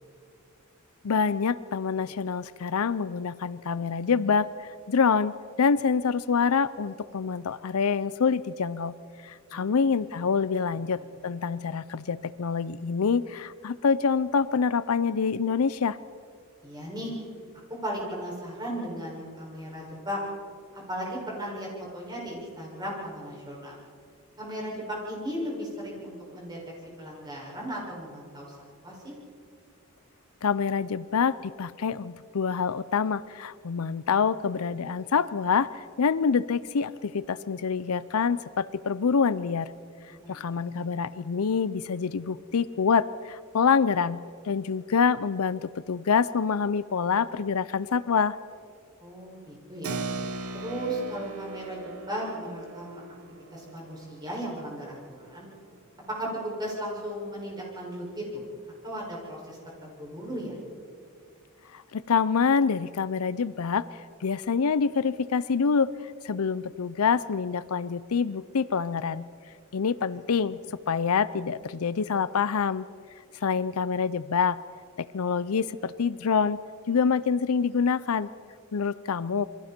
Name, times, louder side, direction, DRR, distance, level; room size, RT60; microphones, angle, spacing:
voice 1, 1.0-4.5 4.9-9.0 9.2-16.0 30.4-39.7 40.3-48.4 61.7-63.9 64.2-65.9 66.2-69.2 69.7-72.9 73.4-74.6 75.0-76.6 76.9-78.3 78.7-79.4, left 5 dB, 80° left, 17 dB, 0.5 m, -26 dB
voice 2, 9.5-9.9 11.0-11.1 16.6-17.1 17.8-20.2 20.9-23.8 24.4-26.6 27.0-28.5 28.8-29.1 40.1-40.4 40.8-41.0 49.0-50.0 50.5-53.0 53.5-55.5 56.1-58.4 58.8-60.5, equal, 20° right, -4 dB, 6.2 m, -36 dB
Keyboard (musical), 49.8-55.9, right 3 dB, 75° right, 1.1 m, -39 dB
28.5 x 23.0 x 4.5 m, 2.2 s
head